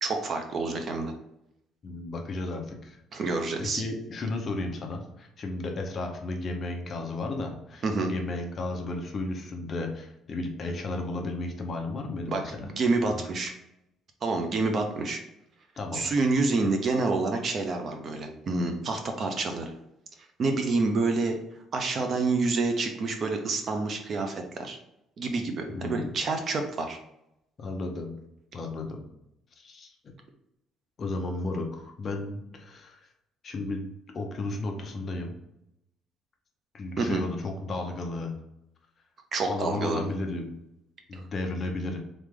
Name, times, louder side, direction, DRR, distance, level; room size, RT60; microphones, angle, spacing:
voice 1, 0.0-1.1 3.1-3.8 7.8-8.1 12.3-13.5 14.2-15.2 15.9-19.7 20.4-21.4 21.7-24.8 25.2-27.0 37.0-37.2 39.3-40.0 41.1-41.2, right 3 dB, 35° right, 5 dB, 0.6 m, -28 dB
voice 2, 1.8-12.7 13.1-13.2 15.8-16.1 25.7-26.1 27.6-28.1 28.5-29.1 29.6-30.1 31.0-33.0 33.4-35.3 36.7-38.3 39.5-40.6 41.1-42.0, left 2 dB, 35° left, 2 dB, 0.7 m, -34 dB
3.8 x 3.4 x 3.6 m, 0.82 s
cardioid pair, 160°, 0 cm